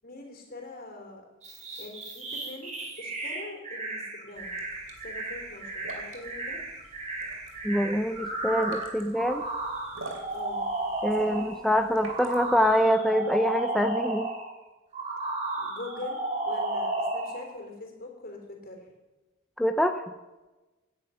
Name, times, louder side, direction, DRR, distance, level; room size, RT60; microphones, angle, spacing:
voice 1, 0.0-1.2 1.6-2.7 3.0-4.6 5.0-6.6 10.3-10.7 11.2-11.5 15.6-16.2 16.4-18.8, left 2 dB, 45° left, 2 dB, 3.5 m, -43 dB
sound 1, 1.4-11.6 12.0-14.5 14.9-17.5, right 2 dB, 35° right, 3.0 m, -34 dB
sound 2, 4.3-12.8, right 2 dB, 75° right, 2.8 m, -47 dB
voice 2, 7.6-9.4 11.0-14.3 19.6-20.1, equal, ahead, 6 dB, 0.5 m, -25 dB
17.5 x 10.0 x 5.7 m, 1.1 s
head